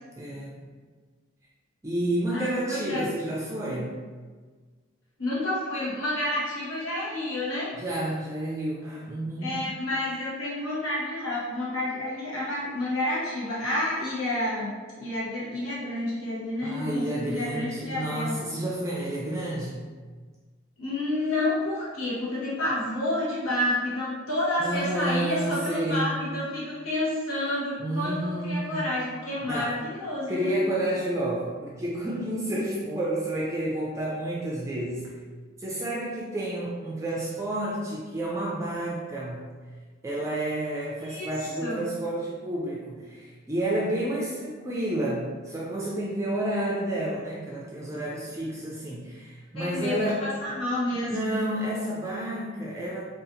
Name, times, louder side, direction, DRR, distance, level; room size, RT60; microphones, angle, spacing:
voice 1, 0.2-0.6 1.8-4.0 7.8-9.6 16.6-19.9 24.6-26.1 27.8-28.9 29.4-29.8 30.3-35.1 35.6-39.5 40.0-50.3 51.1-53.0, right 1 dB, 15° right, -5 dB, 0.3 m, -30 dB
voice 2, 2.3-3.0 5.2-7.7 9.4-18.4 20.8-30.5 41.0-41.3 41.6-41.8 49.5-51.1, left 1 dB, 85° left, -7 dB, 1.0 m, -29 dB
3.8 x 2.4 x 2.6 m, 1.5 s
head